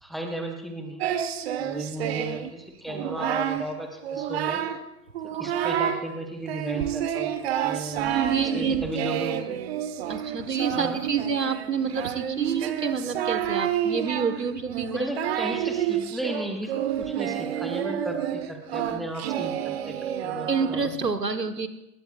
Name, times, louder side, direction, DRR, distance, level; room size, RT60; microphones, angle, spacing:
voice 1, 0.0-1.1 1.6-4.6 5.2-7.3 7.6-9.6 10.7-11.0 14.9-20.9, right 1 dB, ahead, 3 dB, 0.5 m, -35 dB
Singing, 1.0-2.5 2.9-3.6 4.0-4.8 5.1-6.0 6.5-21.0, right 10 dB, 40° right, 1.4 m, -29 dB
voice 2, 8.1-8.8 10.1-15.1 20.5-21.7, right 5 dB, 85° right, 9 dB, 1.6 m, -28 dB
26.0 x 20.5 x 2.5 m, 0.89 s
figure-of-eight pair, 120°, 47 cm